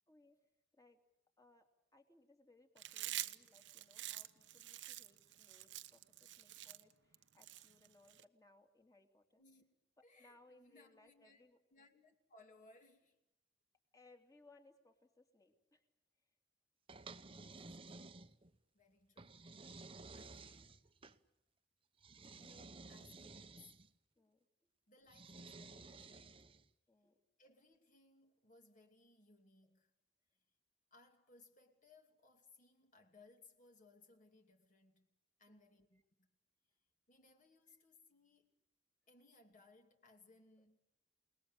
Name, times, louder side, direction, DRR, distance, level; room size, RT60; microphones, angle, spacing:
voice 1, 0.1-0.4 0.7-1.0 1.4-9.4 10.0-11.6 13.9-15.8 24.2-24.4 26.9-27.2 35.5-35.8, left 2 dB, 20° left, 2.7 m, -67 dB
Chewing mastication, 2.8-8.2, right 14 dB, 70° right, 1.0 m, -47 dB
voice 2, 9.4-9.7 10.0-11.4 11.7-13.2 17.3-18.3 18.7-20.9 22.3-23.8 24.9-26.5 27.4-29.9 30.3-30.4 30.9-36.3 37.1-38.6 39.1-40.8, left 3 dB, 45° left, 2.7 m, -66 dB
sound 1, 16.9-18.6 19.2-21.2 22.0-23.9 25.1-26.7, right 3 dB, 30° right, 1.0 m, -54 dB
29.0 x 19.5 x 8.9 m
head